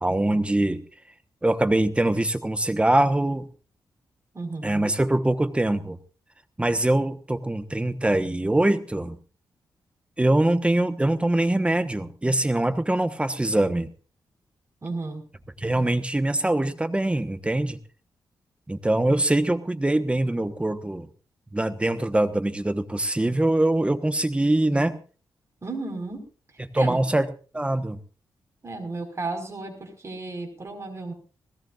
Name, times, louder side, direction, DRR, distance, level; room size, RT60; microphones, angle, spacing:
voice 1, 0.0-0.8 1.4-3.5 4.6-6.0 6.6-9.2 10.2-13.9 15.6-17.8 18.7-21.1 21.5-25.0 26.6-28.0, right 1 dB, 15° right, 10 dB, 1.2 m, -23 dB
voice 2, 4.3-4.8 14.8-15.2 25.6-26.2 26.7-27.0 28.6-31.1, right 3 dB, 35° right, 4 dB, 5.0 m, -33 dB
20.0 x 17.5 x 2.5 m, 0.37 s
cardioid pair, 85°, 8 cm